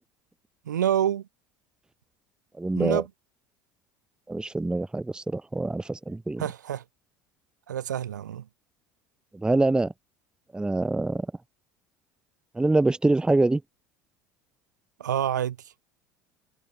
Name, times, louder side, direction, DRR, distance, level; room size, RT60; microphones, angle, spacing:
voice 1, 0.6-1.3 2.7-3.1 6.4-6.8 7.7-8.4 15.0-15.6, right 10 dB, 80° right, 1.5 m, -27 dB
voice 2, 2.6-3.0 4.3-6.4 9.3-9.9 10.5-11.3 12.6-13.6, right 2 dB, 10° right, 0.7 m, -25 dB
hypercardioid pair, 70°, 10 cm